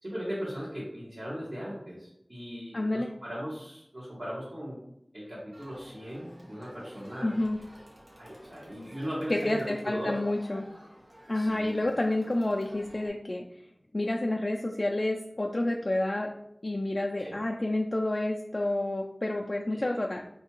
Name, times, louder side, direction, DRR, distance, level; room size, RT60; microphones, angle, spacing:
voice 1, 0.0-4.8 5.1-7.3 8.2-10.2 11.3-11.9 17.2-17.4 19.7-20.0, equal, 45° right, -9 dB, 1.5 m, -38 dB
voice 2, 2.7-3.1 7.2-7.6 9.3-10.6 11.3-13.4 13.9-16.3 16.6-20.2, left 1 dB, 50° left, 1 dB, 0.3 m, -29 dB
Crowd, 5.5-13.1, equal, 70° right, 1.1 m, -52 dB
4.5 x 3.2 x 3.0 m, 0.79 s
wide cardioid pair, 50°, 0 cm